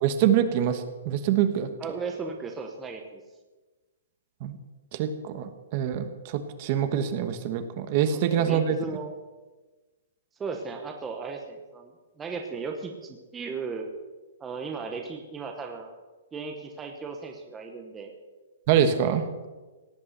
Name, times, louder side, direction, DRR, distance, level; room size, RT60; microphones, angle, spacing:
voice 1, 0.0-1.7 4.4-4.6 4.9-8.8 18.7-19.2, right 9 dB, 35° right, 10 dB, 1.3 m, -25 dB
voice 2, 1.8-3.2 8.1-9.1 10.4-11.9 12.2-13.9 14.4-16.0 16.3-18.1, right 4 dB, 10° right, 3 dB, 1.0 m, -36 dB
17.5 x 8.6 x 8.0 m, 1.2 s
hypercardioid pair, 170°, 0 cm